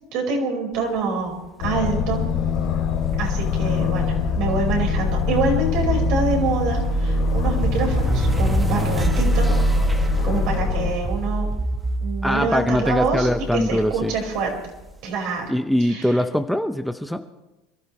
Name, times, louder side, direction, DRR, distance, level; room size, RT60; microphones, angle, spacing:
voice 1, 0.1-1.3 1.6-2.2 3.2-9.5 10.2-11.5 12.0-14.5 15.0-15.5 15.8-16.2, right 4 dB, 60° right, 0 dB, 5.0 m, -26 dB
Aircraft, 1.6-10.9, left 10 dB, 65° left, 2.9 m, -25 dB
sound 1, 1.7-14.9, right 2 dB, 15° right, 1.2 m, -25 dB
voice 2, 12.2-14.1 15.5-17.3, equal, ahead, 8 dB, 0.7 m, -22 dB
27.0 x 13.0 x 3.2 m, 1.0 s
hypercardioid pair, 90°, 0 cm